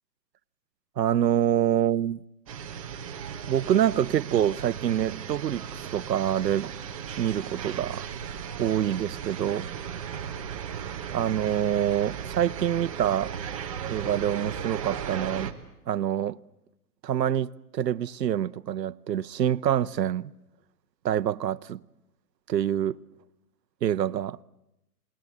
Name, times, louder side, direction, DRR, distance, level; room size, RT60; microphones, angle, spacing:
voice 1, 1.0-2.2 3.5-6.7 7.2-8.0 8.6-9.7 11.1-13.3 13.9-15.5 15.9-16.4 17.0-20.3 21.0-21.8 22.5-23.0 23.8-24.4, right 10 dB, 80° right, 0.9 m, -26 dB
sound 1, 2.5-15.5, right 8 dB, 20° right, 1.0 m, -36 dB
27.5 x 20.0 x 8.4 m
hypercardioid pair, 165°, 50 cm